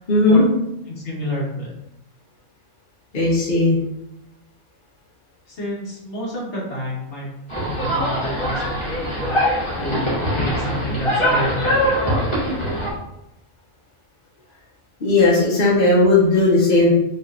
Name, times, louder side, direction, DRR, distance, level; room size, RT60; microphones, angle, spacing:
voice 1, 0.1-0.4 3.1-3.8 15.0-16.9, left 2 dB, 45° left, -6 dB, 1.2 m, -16 dB
voice 2, 0.9-1.7 5.5-7.3 7.6-9.4 9.8-12.1, left 1 dB, 65° left, -4 dB, 1.7 m, -29 dB
sound 1, 7.5-12.9, equal, 25° left, 1.6 m, -22 dB
5.5 x 3.2 x 2.6 m, 0.85 s
omnidirectional pair, 1.3 m